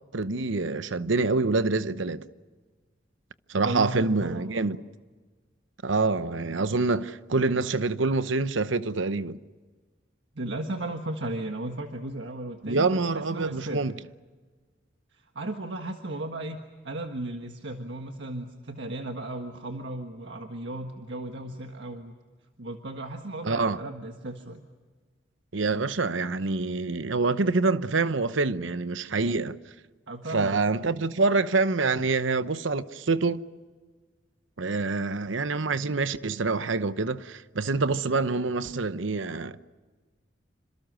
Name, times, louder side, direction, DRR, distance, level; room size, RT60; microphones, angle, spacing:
voice 1, 0.1-2.2 3.5-4.8 5.8-9.4 12.6-13.9 23.4-23.8 25.5-29.6 30.3-33.4 34.6-39.7, right 3 dB, 85° right, 0.9 m, -26 dB
voice 2, 3.6-4.7 10.3-13.8 15.1-22.1 22.6-24.6 30.1-30.6, right 1 dB, 70° right, 1.6 m, -35 dB
28.0 x 26.0 x 6.4 m
head